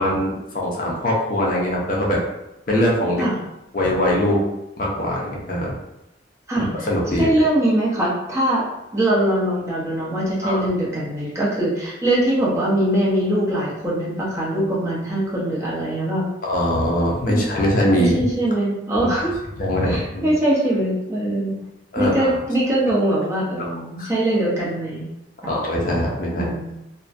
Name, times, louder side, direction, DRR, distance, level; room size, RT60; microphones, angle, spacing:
voice 1, 0.0-2.2 2.7-3.2 3.7-4.4 4.8-5.7 6.9-7.3 10.4-10.6 16.4-18.1 19.0-19.1 19.6-20.3 21.9-22.3 24.0-24.1 25.5-26.5, equal, 45° left, -3 dB, 0.5 m, -21 dB
voice 2, 6.5-6.9 7.2-8.6 8.9-16.3 17.3-17.5 17.9-19.3 19.8-21.5 22.0-25.1 25.4-25.5 26.3-26.8, right 1 dB, 15° right, -6 dB, 0.6 m, -22 dB
2.4 x 2.1 x 2.4 m, 0.90 s
head